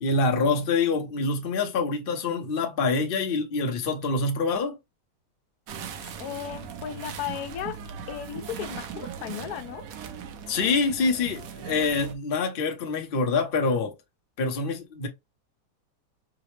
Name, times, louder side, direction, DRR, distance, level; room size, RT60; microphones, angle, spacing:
voice 1, 0.0-4.8 10.5-13.9 14.4-15.1, left 4 dB, 45° left, 0.7 m, -26 dB
sound 1, 5.7-12.1, right 7 dB, 65° right, 1.0 m, -39 dB
voice 2, 6.2-7.8 8.1-9.9, left 10 dB, 70° left, 1.1 m, -35 dB
4.9 x 2.0 x 3.1 m
omnidirectional pair, 1.8 m